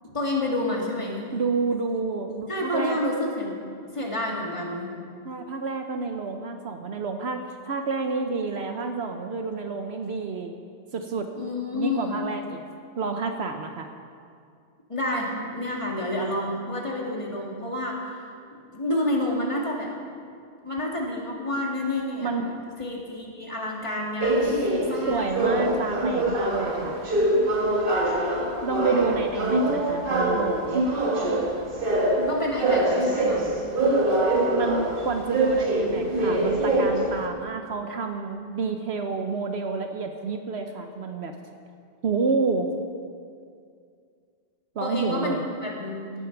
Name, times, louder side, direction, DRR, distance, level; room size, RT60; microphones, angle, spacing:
voice 1, 0.0-1.3 2.5-3.6 3.9-4.9 11.4-12.2 14.9-20.0 20.6-25.4 31.2-31.4 32.3-33.5 44.8-46.1, left 1 dB, 25° left, -2 dB, 2.1 m, -29 dB
voice 2, 1.3-3.0 5.2-10.5 10.9-12.6 13.0-13.9 22.2-22.5 25.1-27.0 28.6-30.8 33.9-41.3 42.0-42.7 44.8-45.4, right 4 dB, 70° right, 5 dB, 1.0 m, -29 dB
sound 1, 24.2-37.3, right 1 dB, 50° right, 1.6 m, -24 dB
16.5 x 8.6 x 5.9 m, 2.3 s
omnidirectional pair, 1.2 m